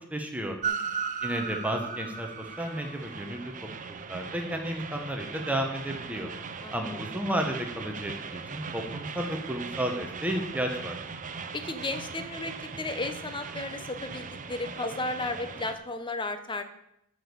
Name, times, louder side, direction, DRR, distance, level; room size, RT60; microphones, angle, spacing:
voice 1, 0.1-0.6 1.2-2.3 2.6-3.5 4.1-6.3 6.7-11.0, right 1 dB, 5° right, 3 dB, 1.1 m, -32 dB
voice 2, 0.6-1.0 6.6-6.7 11.5-16.6, left 2 dB, 20° left, 8 dB, 0.9 m, -34 dB
Train, 0.6-15.8, right 5 dB, 35° right, 0.7 m, -38 dB
8.9 x 6.3 x 6.9 m, 0.78 s
head